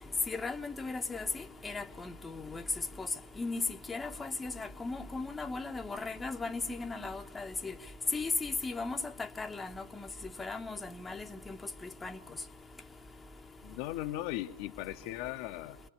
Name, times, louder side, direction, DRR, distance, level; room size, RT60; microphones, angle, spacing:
voice 1, 0.3-2.6 3.0-3.1 3.4-7.7 8.1-10.1 10.4-11.6 12.0-12.2, left 3 dB, 10° left, 6 dB, 1.1 m, -37 dB
voice 2, 13.6-15.8, left 15 dB, 45° left, 6 dB, 1.0 m, -38 dB
27.5 x 21.0 x 8.5 m, 0.75 s
figure-of-eight pair, 90°, 0 cm